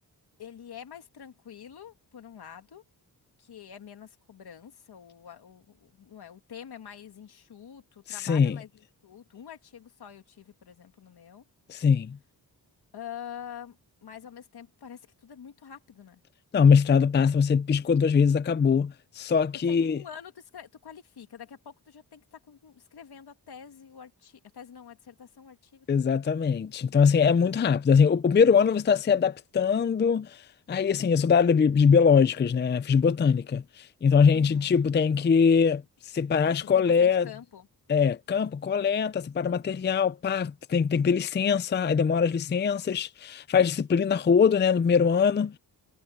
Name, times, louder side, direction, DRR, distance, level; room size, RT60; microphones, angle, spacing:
voice 1, 0.4-2.8 3.4-11.4 12.9-16.2 19.6-26.3 34.3-34.8 36.4-37.7, left 8 dB, 75° left, 2.4 m, -46 dB
voice 2, 8.1-8.6 11.7-12.2 16.5-20.0 25.9-37.3 37.9-45.5, left 6 dB, 30° left, 0.4 m, -22 dB
wide cardioid pair, 145°, 39 cm